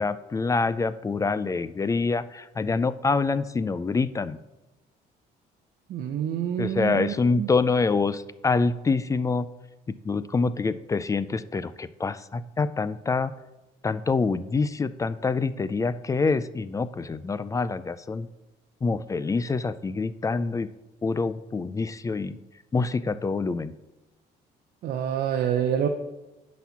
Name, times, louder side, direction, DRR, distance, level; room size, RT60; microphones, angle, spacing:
voice 1, 0.0-4.4 6.6-9.5 9.9-13.3 13.8-18.3 18.8-20.7 21.0-22.4 22.7-23.7, left 4 dB, 20° left, 15 dB, 0.3 m, -26 dB
voice 2, 5.9-7.5 24.8-25.9, right 9 dB, 65° right, 6 dB, 0.7 m, -27 dB
10.5 x 4.2 x 5.8 m, 1.0 s
cardioid pair, 110°, 17 cm